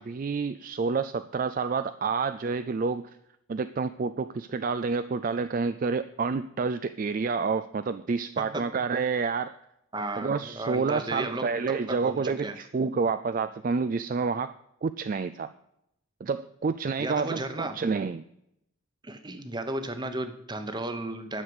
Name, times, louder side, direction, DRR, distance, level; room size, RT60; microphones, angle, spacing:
voice 1, 0.0-3.2 3.5-9.6 10.2-14.5 14.8-15.5 16.2-18.2, right 4 dB, 40° right, 12 dB, 0.3 m, -29 dB
voice 2, 9.9-12.6 17.0-17.8 19.0-21.4, right 2 dB, 20° right, 9 dB, 0.9 m, -34 dB
11.0 x 6.6 x 8.0 m, 0.80 s
head